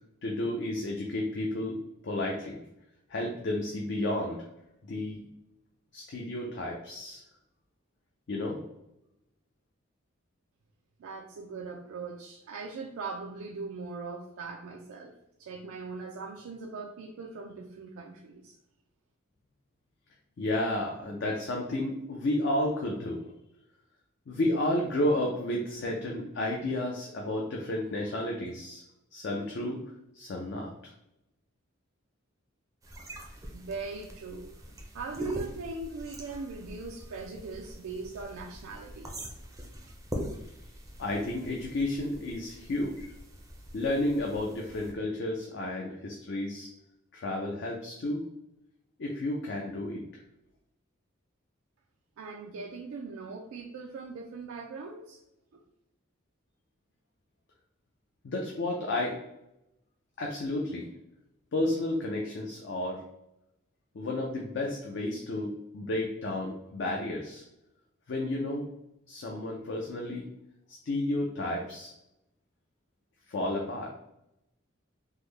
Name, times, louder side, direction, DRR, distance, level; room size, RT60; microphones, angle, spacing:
voice 1, 0.2-2.6 3.1-4.4 4.9-5.2 5.9-7.2 8.3-8.6 20.4-23.2 24.3-28.8 29.1-29.8 30.1-30.7 41.0-43.1 43.7-46.7 47.1-48.2 49.0-50.0 58.2-59.2 60.2-60.8 61.5-63.0 63.9-67.4 68.1-68.7 69.1-70.2 70.7-71.9 73.3-73.9, left 1 dB, 55° left, 0 dB, 0.5 m, -32 dB
voice 2, 11.0-15.1 15.4-18.6 33.5-34.5 34.9-39.1 52.2-55.2 55.5-55.6, right 4 dB, 85° right, 2 dB, 0.4 m, -40 dB
sound 1, 32.8-44.9, equal, 15° right, 0.5 m, -43 dB
3.5 x 2.1 x 3.1 m, 0.87 s
head